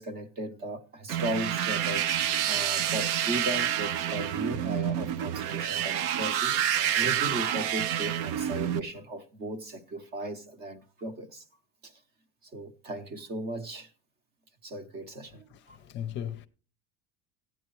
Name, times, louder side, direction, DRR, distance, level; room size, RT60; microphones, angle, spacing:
voice 1, 0.0-2.1 2.5-6.5 7.0-11.4 11.8-11.9 12.5-13.9 14.6-15.8, right 1 dB, 35° right, 0.8 m, -36 dB
sound 1, 1.1-8.8, right 10 dB, 80° right, 0.7 m, -28 dB
voice 2, 15.5-16.5, left 10 dB, 40° left, 0.6 m, -37 dB
15.5 x 9.1 x 3.1 m
cardioid pair, 175°, 29 cm